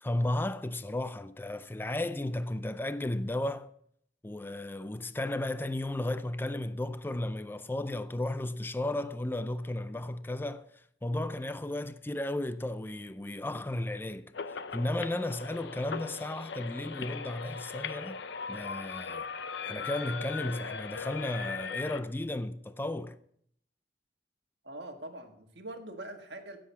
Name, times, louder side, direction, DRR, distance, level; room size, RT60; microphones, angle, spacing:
voice 1, 0.0-3.7 4.2-18.2 18.5-19.3 19.6-23.2, left 1 dB, 10° left, 0.4 m, -34 dB
sound 1, 14.3-22.0, left 5 dB, 70° left, 0.7 m, -39 dB
voice 2, 24.6-26.6, right 1 dB, 65° right, 1.6 m, -43 dB
15.5 x 7.8 x 5.7 m
head